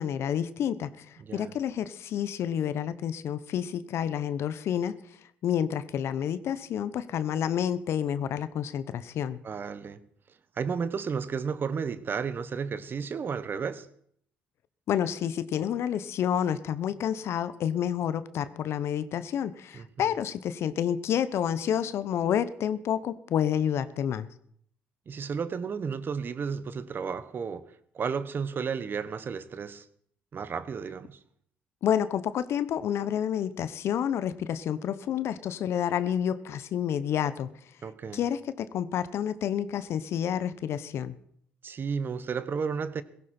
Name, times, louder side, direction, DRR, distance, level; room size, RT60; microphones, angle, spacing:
voice 1, 0.0-4.9 5.4-9.4 14.9-24.3 31.8-37.5 38.1-41.2, left 9 dB, 65° left, 0.9 m, -29 dB
voice 2, 1.2-1.5 9.4-10.1 10.6-13.9 19.7-20.1 25.1-27.6 27.9-29.8 30.3-31.2 37.8-38.2 41.6-43.0, right 6 dB, 45° right, 1.1 m, -33 dB
17.0 x 15.5 x 4.4 m
supercardioid pair, 60°, 5 cm